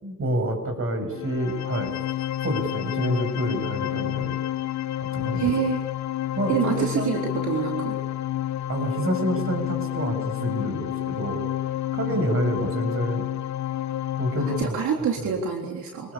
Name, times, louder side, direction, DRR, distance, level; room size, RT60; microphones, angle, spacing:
voice 1, 0.0-1.9 2.4-4.4 5.0-5.5 6.4-7.1 8.7-11.4 11.9-13.3 14.2-14.8 15.2-15.3 16.0-16.1, right 1 dB, 45° right, 7 dB, 7.4 m, -28 dB
sound 1, 1.1-14.7, left 13 dB, 65° left, 0.9 m, -29 dB
voice 2, 5.3-5.8 6.5-8.0 12.1-12.2 14.6-16.1, right 7 dB, 75° right, 1 dB, 3.6 m, -26 dB
26.5 x 20.0 x 8.7 m, 1.1 s
cardioid pair, 90°, 30 cm